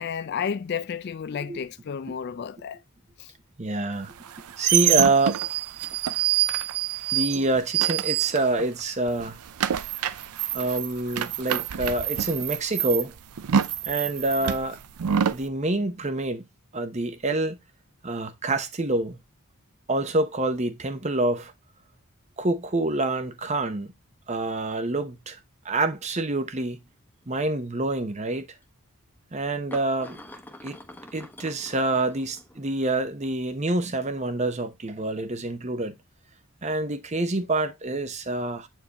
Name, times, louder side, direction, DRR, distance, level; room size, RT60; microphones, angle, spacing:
voice 1, 0.0-2.8 3.2-3.3, left 7 dB, 45° left, 0.3 m, -31 dB
voice 2, 3.6-4.1 4.6-5.4 7.1-9.3 10.5-13.1 13.9-14.8 15.3-16.4 16.7-17.6 18.0-19.2 19.9-21.5 22.4-23.9 24.3-25.4 25.6-26.8 27.3-28.5 29.3-30.2 30.6-30.8 31.1-35.9 36.6-38.7, right 2 dB, 30° right, 0.7 m, -26 dB
sound 1, 4.2-8.8 9.1-15.5, right 10 dB, 85° right, 0.5 m, -26 dB
sound 2, 25.1-25.2 25.8-26.0 27.2-27.3 28.6-28.7 29.7-32.8, left 1 dB, 10° left, 1.0 m, -45 dB
8.3 x 4.6 x 2.9 m
head